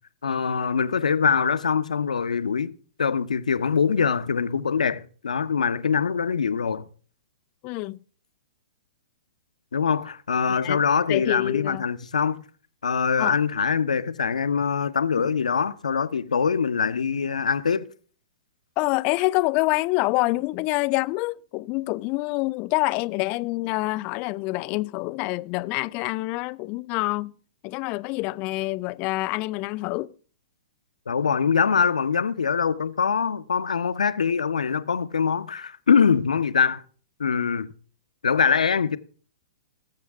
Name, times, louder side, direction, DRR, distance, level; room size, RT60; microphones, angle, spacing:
voice 1, 0.2-2.7 3.0-6.9 9.7-12.4 12.8-17.9 31.1-36.8 37.2-37.7 38.2-39.0, left 6 dB, 85° left, 0.9 m, -23 dB
voice 2, 7.6-8.0 10.6-10.8 11.1-11.8 13.2-13.4 15.2-15.3 18.8-27.3 27.6-30.1, left 22 dB, 35° left, 0.5 m, -26 dB
19.0 x 7.7 x 3.6 m
hypercardioid pair, 125°, 4 cm